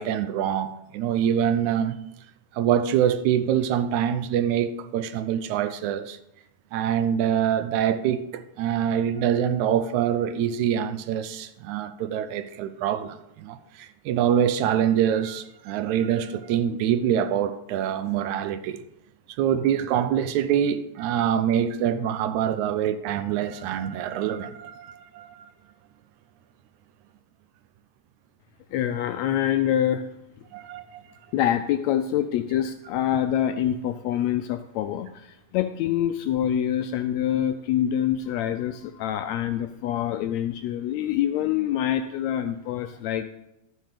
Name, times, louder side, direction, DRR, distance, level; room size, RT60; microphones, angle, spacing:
voice 1, 0.0-2.0 2.5-6.2 6.7-18.8 19.4-25.5 30.5-31.0, right 9 dB, 80° right, 1.9 m, -25 dB
voice 2, 28.7-30.0 31.3-43.2, left 10 dB, 80° left, 1.6 m, -25 dB
12.5 x 6.4 x 5.0 m
omnidirectional pair, 3.5 m